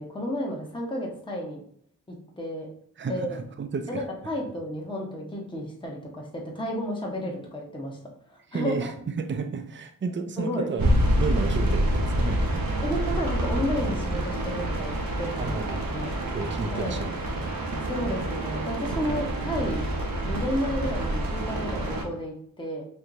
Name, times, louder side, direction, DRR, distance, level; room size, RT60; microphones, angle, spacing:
voice 1, 0.0-1.6 2.4-2.7 3.1-3.4 3.9-8.0 8.3-8.9 10.4-10.7 12.8-14.9 15.2-15.6 15.9-16.1 16.7-17.0 17.8-19.9 20.2-22.8, equal, 15° left, -1 dB, 0.9 m, -32 dB
voice 2, 3.0-4.1 8.5-8.9 9.2-12.7 15.4-17.5, right 4 dB, 35° right, 7 dB, 0.5 m, -33 dB
sound 1, 10.8-22.0, right 1 dB, 85° right, 0.8 m, -27 dB
4.4 x 2.8 x 2.6 m, 0.62 s
wide cardioid pair, 65°, 34 cm